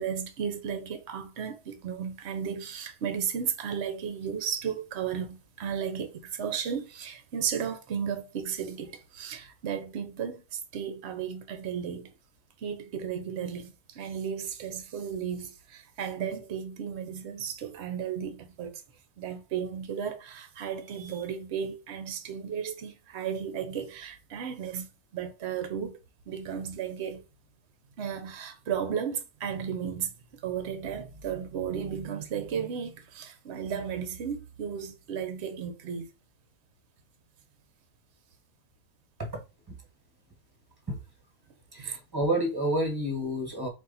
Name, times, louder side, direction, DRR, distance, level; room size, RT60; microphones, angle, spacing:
voice 1, 0.0-12.1 12.6-18.8 19.2-26.0 26.3-27.2 28.0-30.1 30.4-36.1 41.8-42.0, right 7 dB, 55° right, 1.0 m, -34 dB
voice 2, 41.7-43.7, right 1 dB, 15° right, 1.4 m, -29 dB
4.1 x 2.7 x 4.0 m
omnidirectional pair, 1.5 m